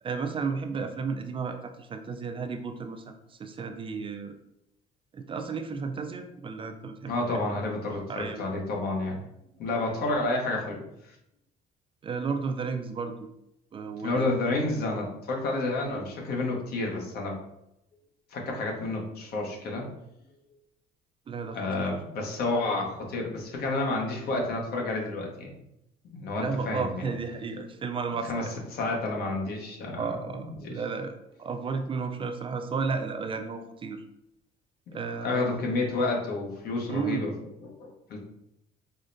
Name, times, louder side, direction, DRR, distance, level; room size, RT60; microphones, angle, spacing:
voice 1, 0.0-4.3 5.1-7.4 7.9-8.4 12.0-13.3 13.7-14.4 21.3-22.0 26.4-28.5 30.0-31.1 31.4-34.0 34.9-35.5 36.9-37.2, right 5 dB, 30° right, 5 dB, 0.3 m, -33 dB
voice 2, 7.1-9.2 9.6-10.8 14.0-17.4 18.3-19.9 21.5-25.5 26.1-27.1 28.3-28.4 28.7-30.1 30.6-30.7 34.9-37.3 37.6-38.2, left 2 dB, 65° left, 0 dB, 0.9 m, -30 dB
4.9 x 2.1 x 2.6 m, 0.83 s
cardioid pair, 110°, 17 cm